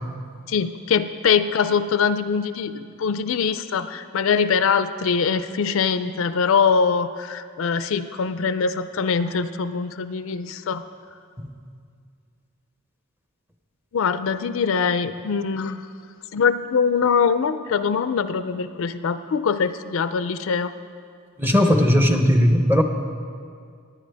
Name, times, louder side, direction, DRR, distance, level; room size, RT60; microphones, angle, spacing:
voice 1, 0.5-10.8 13.9-15.8 16.3-20.7, left 6 dB, 60° left, 12 dB, 0.4 m, -23 dB
voice 2, 21.4-22.8, equal, 10° right, 5 dB, 0.7 m, -17 dB
19.5 x 9.7 x 3.4 m, 2.2 s
head